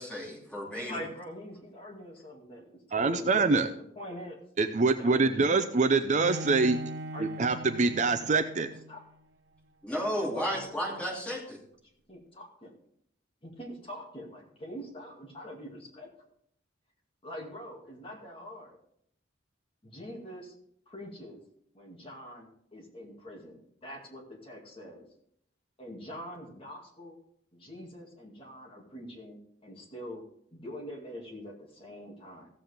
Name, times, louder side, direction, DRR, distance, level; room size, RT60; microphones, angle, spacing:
voice 1, 0.0-1.0 9.8-11.6, equal, 5° left, -4 dB, 2.8 m, -33 dB
voice 2, 0.8-4.4 5.0-5.7 7.1-7.2 7.9-8.2 8.9-9.0 10.2-11.4 12.1-12.7 13.4-16.1 17.2-18.8 19.8-20.6 20.9-21.4 21.7-25.1 25.8-27.2 27.5-30.2 30.5-32.5, equal, 30° left, -1 dB, 2.2 m, -44 dB
voice 3, 2.9-3.7 4.6-6.8 7.2-8.7, right 3 dB, 40° right, 8 dB, 0.5 m, -25 dB
Bowed string instrument, 6.2-9.1, right 1 dB, 80° right, 0.9 m, -41 dB
15.5 x 7.6 x 3.5 m, 0.70 s
head